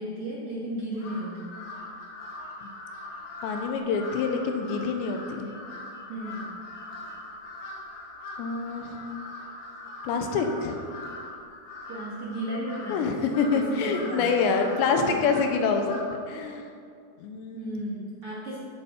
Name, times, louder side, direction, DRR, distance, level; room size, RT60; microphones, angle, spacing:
voice 1, 0.0-1.6 6.1-6.6 11.9-13.1 13.5-15.1 17.5-18.6, right 1 dB, 50° right, -6 dB, 1.8 m, -35 dB
Crow, 1.0-16.3, left 2 dB, 65° left, 1.9 m, -41 dB
voice 2, 3.4-5.5 8.4-9.0 10.0-10.8 12.9-16.0 16.3-16.7 17.2-17.8, left 5 dB, 90° left, 5 dB, 3.2 m, -26 dB
14.0 x 7.0 x 5.3 m, 2.3 s
omnidirectional pair, 5.0 m